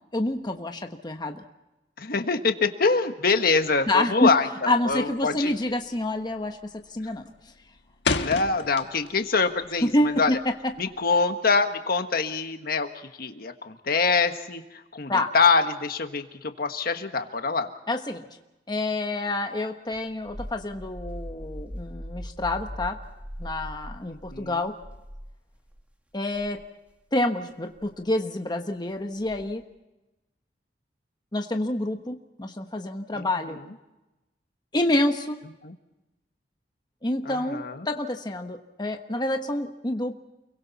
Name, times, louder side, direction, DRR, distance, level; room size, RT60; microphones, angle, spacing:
voice 1, 0.1-1.4 3.9-4.3 4.7-6.6 6.9-7.2 9.8-10.5 15.1-15.3 17.9-18.3 18.7-23.0 23.4-24.8 26.1-26.6 27.1-29.6 31.3-33.6 34.7-35.4 37.0-40.1, left 1 dB, 25° left, 4 dB, 1.3 m, -27 dB
voice 2, 2.0-5.5 8.2-10.4 10.8-12.9 13.2-14.6 14.9-17.7 24.1-24.6 33.1-33.2 35.6-35.7 37.2-37.9, left 4 dB, 60° left, 7 dB, 1.5 m, -25 dB
sound 1, 4.8-5.2 5.5-5.9 6.2-6.6 7.0-9.3 9.6-11.1, left 4 dB, 85° left, 1.5 m, -30 dB
sound 2, 19.9-25.8 26.2-26.6 27.7-28.0 29.2-29.6, equal, 10° right, 2.2 m, -40 dB
29.5 x 23.0 x 4.2 m, 1.0 s
head